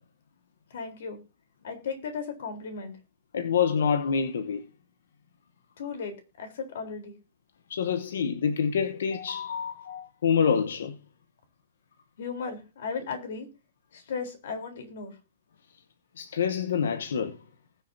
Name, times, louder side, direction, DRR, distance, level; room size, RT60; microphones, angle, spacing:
voice 1, 0.7-1.2 1.6-2.9 5.8-7.2 12.2-13.5 13.9-15.2, left 5 dB, 60° left, 3.8 m, -36 dB
voice 2, 3.3-4.6 7.7-11.0 16.2-17.4, left 7 dB, 85° left, 1.1 m, -27 dB
20.0 x 6.9 x 2.8 m
hypercardioid pair, 175°, 0 cm